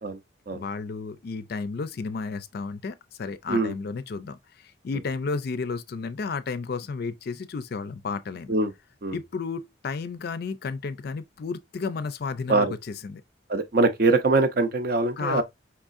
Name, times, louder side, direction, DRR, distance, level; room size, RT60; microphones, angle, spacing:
voice 1, 0.5-8.5 9.1-13.2 15.2-15.4, left 4 dB, 55° left, 0.4 m, -32 dB
voice 2, 13.5-15.4, right 3 dB, 50° right, 0.6 m, -23 dB
4.8 x 3.5 x 2.5 m
head